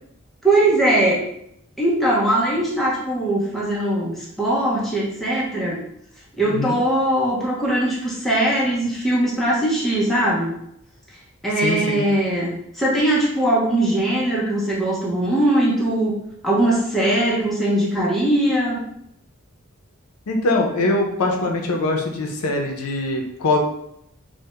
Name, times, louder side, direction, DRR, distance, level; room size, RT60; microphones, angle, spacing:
voice 1, 0.4-1.2 1.8-5.8 6.4-10.5 11.4-16.2 16.4-18.8, right 1 dB, ahead, -6 dB, 0.4 m, -20 dB
voice 2, 6.5-6.8 11.6-12.0 20.3-23.6, left 2 dB, 85° left, 1 dB, 0.5 m, -22 dB
2.2 x 2.0 x 2.9 m, 0.76 s
head